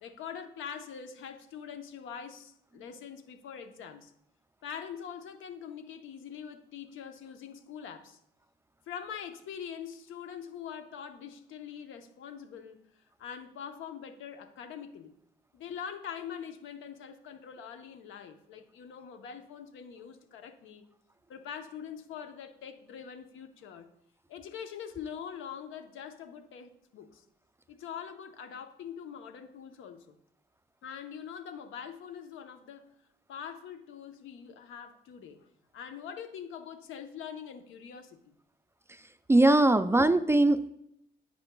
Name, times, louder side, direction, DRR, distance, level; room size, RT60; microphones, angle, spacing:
voice 1, 0.0-4.1 4.6-8.2 8.9-12.8 13.2-15.1 15.5-20.8 21.3-23.9 24.3-27.2 27.7-30.2 30.8-32.9 33.3-35.5 35.7-38.3, left 7 dB, 80° left, 7 dB, 0.9 m, -43 dB
voice 2, 39.3-40.7, right 2 dB, 15° right, 11 dB, 0.4 m, -21 dB
10.5 x 7.7 x 2.3 m, 0.78 s
cardioid pair, 90°, 20 cm